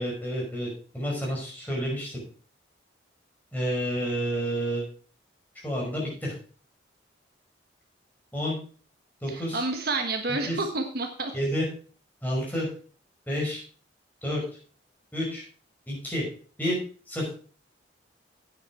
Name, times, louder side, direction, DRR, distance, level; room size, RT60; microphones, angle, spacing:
voice 1, 0.0-2.2 3.5-4.9 5.6-6.3 8.3-8.6 9.2-9.6 10.5-10.6 11.3-11.7 12.2-12.7 13.3-13.6 14.2-14.4 15.1-15.4 15.9-16.2 16.6-16.8 17.1-17.3, equal, 10° left, -4 dB, 5.5 m, -29 dB
voice 2, 9.3-11.3, right 3 dB, 55° right, 5 dB, 1.3 m, -29 dB
9.1 x 8.9 x 4.9 m, 0.41 s
head